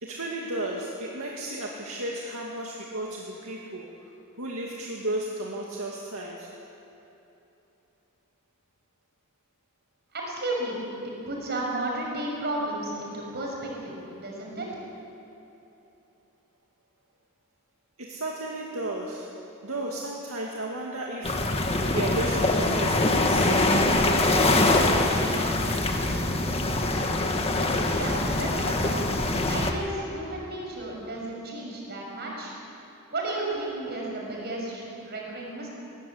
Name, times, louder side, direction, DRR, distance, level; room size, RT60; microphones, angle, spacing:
voice 1, 0.0-3.9 4.4-6.5 18.0-19.4 19.6-24.8, right 1 dB, 65° right, -2 dB, 2.3 m, -34 dB
voice 2, 10.1-10.8 11.0-14.7 27.9-29.0 29.5-32.5 33.1-35.7, right 1 dB, 50° right, -2 dB, 6.4 m, -33 dB
sound 1, 21.2-29.7, left 2 dB, 25° left, 1.7 m, -24 dB
21.5 x 18.0 x 8.6 m, 3.0 s
head